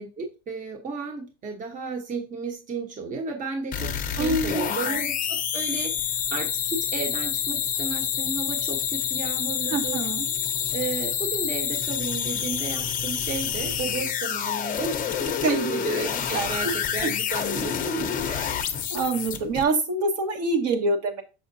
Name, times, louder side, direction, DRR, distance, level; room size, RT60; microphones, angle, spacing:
voice 1, 0.0-10.1 10.7-15.0 15.2-16.7 16.9-18.4, right 4 dB, 25° right, 3 dB, 1.1 m, -33 dB
sound 1, 3.7-19.6, left 8 dB, 25° left, 0.8 m, -28 dB
voice 2, 4.2-5.0 9.7-10.2 15.4-15.7 16.3-17.1 18.3-18.6 18.9-21.2, right 3 dB, 55° right, 4 dB, 1.5 m, -26 dB
6.5 x 5.8 x 2.7 m, 0.30 s
supercardioid pair, 140°, 31 cm